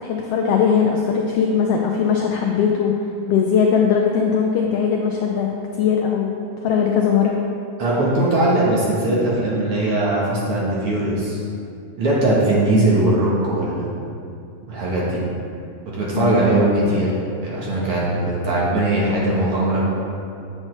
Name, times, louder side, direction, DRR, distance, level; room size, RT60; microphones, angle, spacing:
voice 1, 0.0-7.4 16.1-16.4, left 6 dB, 85° left, 1 dB, 1.4 m, -20 dB
voice 2, 7.8-11.4 12.0-13.9 14.7-15.2 15.9-17.1 17.4-19.9, right 1 dB, 55° right, -6 dB, 1.9 m, -20 dB
7.6 x 7.4 x 3.2 m, 2.5 s
omnidirectional pair, 3.3 m